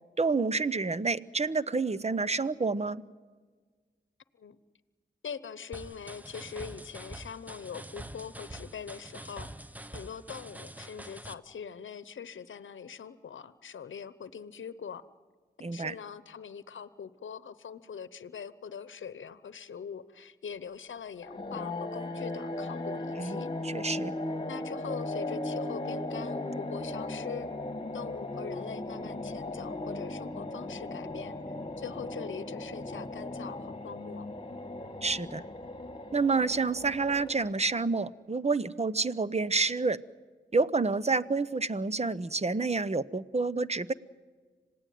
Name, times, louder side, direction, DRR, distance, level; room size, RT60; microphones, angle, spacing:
voice 1, 0.2-3.0 15.6-15.9 23.2-23.4 23.6-24.1 35.0-35.4 36.1-40.0 40.5-43.9, right 4 dB, 35° right, 16 dB, 0.9 m, -28 dB
voice 2, 5.2-9.5 9.9-15.0 15.7-23.5 24.5-27.5 27.9-34.3, left 7 dB, 80° left, 15 dB, 0.9 m, -43 dB
sound 1, 5.7-11.3, right 1 dB, 10° right, 1.1 m, -45 dB
sound 2, 21.2-37.8, left 2 dB, 25° left, 2.5 m, -37 dB
26.5 x 18.0 x 9.3 m, 1.5 s
cardioid pair, 45°, 20 cm